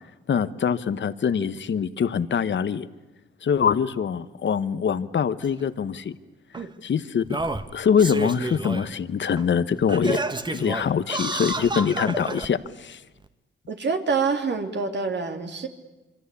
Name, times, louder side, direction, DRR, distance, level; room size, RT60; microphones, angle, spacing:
voice 1, 0.3-2.9 3.4-6.2 6.8-7.2 7.7-10.2 10.5-13.0, left 7 dB, 65° left, 14 dB, 1.2 m, -24 dB
Singing, 5.4-5.5 6.5-6.6 7.2-8.9 9.4-9.5 9.9-12.5 13.2-13.3, right 2 dB, 20° right, 1.5 m, -30 dB
voice 2, 13.7-15.7, right 5 dB, 60° right, 5 dB, 2.9 m, -26 dB
26.5 x 24.0 x 8.5 m, 1.1 s
cardioid pair, 70°, 21 cm